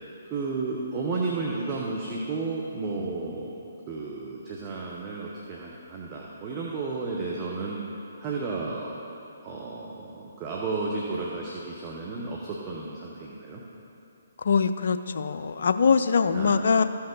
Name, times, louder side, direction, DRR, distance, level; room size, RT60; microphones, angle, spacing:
voice 1, 0.3-3.5 3.9-7.8 8.2-8.9 9.4-13.6 16.3-16.8, right 3 dB, 25° right, -3 dB, 0.9 m, -32 dB
voice 2, 14.4-16.8, left 5 dB, 60° left, 10 dB, 0.4 m, -23 dB
14.0 x 5.6 x 3.9 m, 2.9 s
figure-of-eight pair, 140°, 0 cm